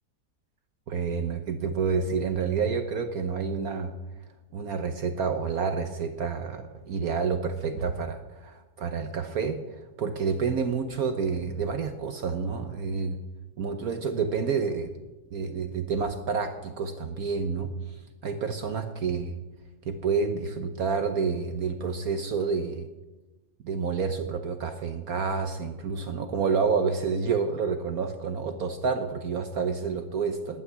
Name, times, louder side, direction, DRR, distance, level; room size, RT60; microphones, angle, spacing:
voice 1, 0.9-3.9 4.5-13.2 13.6-14.9 15.3-17.7 18.2-19.4 19.8-22.9 23.6-30.6, right 5 dB, 60° right, 7 dB, 1.2 m, -29 dB
11.5 x 9.1 x 9.4 m, 1.1 s
omnidirectional pair, 1.9 m